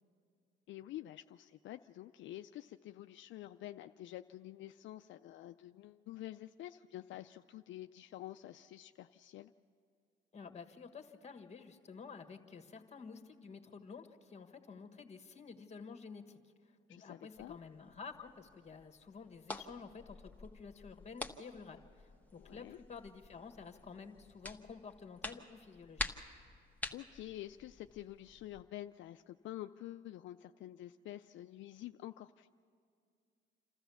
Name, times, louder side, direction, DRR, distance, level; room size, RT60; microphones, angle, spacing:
voice 1, 0.7-9.5 16.9-17.6 22.4-22.8 26.9-32.6, left 14 dB, 70° left, 8 dB, 0.4 m, -48 dB
voice 2, 10.3-26.1, left 5 dB, 35° left, 6 dB, 1.6 m, -51 dB
sound 1, 17.3-28.6, left 2 dB, 10° left, 1.2 m, -48 dB
28.0 x 13.5 x 7.0 m, 2.3 s
cardioid pair, 90°, 20 cm